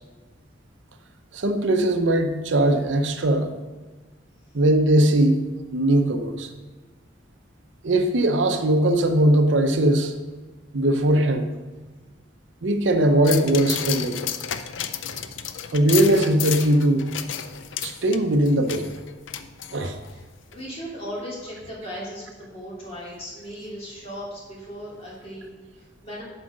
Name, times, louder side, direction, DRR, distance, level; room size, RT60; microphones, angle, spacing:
voice 1, 1.3-3.5 4.5-5.4 5.7-6.5 7.8-10.1 10.7-11.5 12.6-14.2 15.7-17.1 17.8-18.9 19.7-20.0, right 1 dB, 75° right, 7 dB, 0.7 m, -20 dB
sound 1, 13.2-20.1 20.5-20.6, left 9 dB, 90° left, 0.5 m, -32 dB
voice 2, 15.0-15.3 20.1-20.2 20.5-26.2, equal, 35° left, -6 dB, 2.8 m, -37 dB
7.7 x 4.9 x 6.2 m, 1.3 s
head